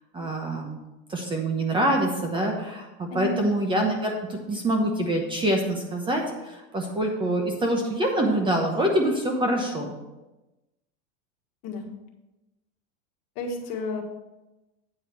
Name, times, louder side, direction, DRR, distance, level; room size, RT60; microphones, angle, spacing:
voice 1, 0.1-0.8 1.1-10.0, right 1 dB, 15° right, 2 dB, 0.8 m, -25 dB
voice 2, 3.1-3.6 11.6-11.9 13.3-14.0, left 2 dB, 45° left, 1 dB, 1.6 m, -31 dB
8.7 x 4.8 x 6.0 m, 1.0 s
supercardioid pair, 155°, 35 cm